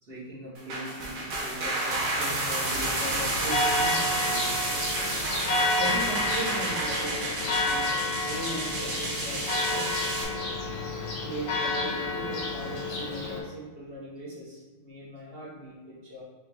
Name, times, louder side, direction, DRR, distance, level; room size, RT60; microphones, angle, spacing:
voice 1, 0.0-4.6 5.8-10.0 11.2-16.2, right 1 dB, 80° right, -7 dB, 0.5 m, -39 dB
sound 1, 0.5-10.2, right 2 dB, 55° right, 1.2 m, -31 dB
Church bell, 2.7-13.4, left 2 dB, 85° left, 1.8 m, -30 dB
4.7 x 3.0 x 3.3 m, 1.3 s
omnidirectional pair, 2.4 m